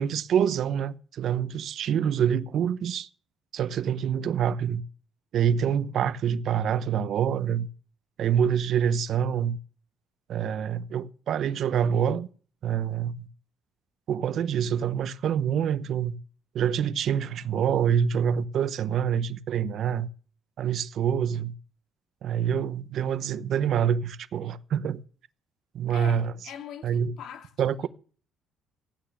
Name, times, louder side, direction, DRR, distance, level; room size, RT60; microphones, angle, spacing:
voice 1, 0.0-3.1 3.5-4.8 5.3-7.7 8.2-9.6 10.3-12.3 12.6-13.3 14.1-16.2 16.5-20.1 20.6-21.5 22.2-25.0 25.7-26.3 26.8-27.1 27.6-27.9, right 8 dB, 50° right, 0.8 m, -26 dB
voice 2, 25.9-27.9, left 9 dB, 60° left, 2.1 m, -43 dB
15.0 x 9.3 x 7.4 m
cardioid pair, 140°, 0 cm